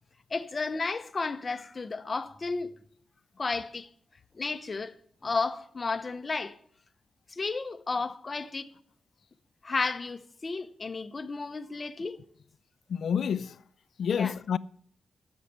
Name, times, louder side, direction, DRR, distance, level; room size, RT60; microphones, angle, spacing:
voice 1, 0.3-2.7 3.4-3.9 4.3-5.0 5.2-6.6 7.3-8.7 9.6-12.2 14.2-14.3, left 4 dB, 25° left, 0.7 m, -33 dB
voice 2, 12.9-13.6 14.0-14.6, left 7 dB, 60° left, 0.4 m, -28 dB
12.5 x 7.2 x 8.0 m
wide cardioid pair, 170°, 0 cm